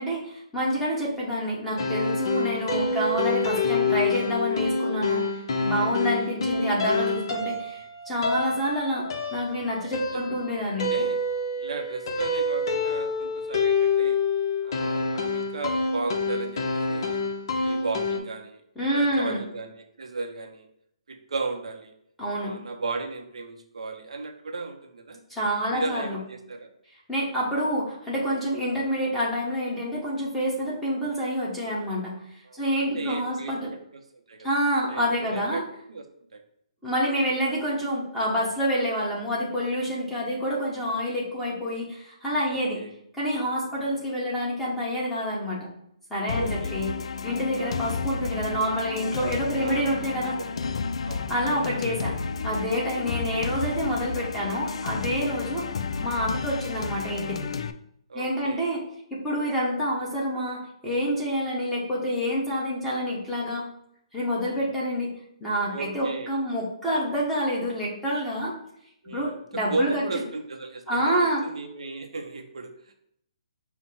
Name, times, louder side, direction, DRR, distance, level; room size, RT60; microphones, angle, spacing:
voice 1, 0.0-5.2 5.6-9.0 9.3-10.9 18.8-19.4 22.2-22.6 25.3-26.2 27.1-32.1 32.6-33.7 34.4-35.6 36.8-42.8 43.1-45.7 46.1-46.9 47.2-50.4 51.3-52.2 52.4-55.7 56.0-57.5 58.1-58.8 59.2-63.6 64.1-65.1 65.4-68.5 69.0-70.0 70.9-71.4, equal, 5° left, -7 dB, 1.1 m, -27 dB
sound 1, 1.8-18.2, left 3 dB, 50° left, 0.7 m, -27 dB
voice 2, 5.8-6.3 8.3-8.5 10.1-10.3 10.7-11.2 11.6-14.2 14.6-17.2 17.6-18.6 18.9-20.7 21.1-21.9 22.4-25.2 25.7-26.7 32.5-34.6 34.9-35.6 35.9-36.0 36.3-36.4 37.3-37.4 42.5-42.9 43.7-43.9 46.3-46.7 47.6-47.8 49.6-50.6 51.0-51.3 51.7-51.8 55.0-55.3 58.1-58.6 61.3-61.5 64.4-64.7 65.7-66.3 69.0-69.4 69.7-72.9, right 3 dB, 85° right, 4 dB, 0.7 m, -35 dB
sound 2, 46.3-57.7, left 5 dB, 70° left, 0.3 m, -31 dB
5.7 x 2.1 x 4.2 m, 0.74 s
hypercardioid pair, 155°, 3 cm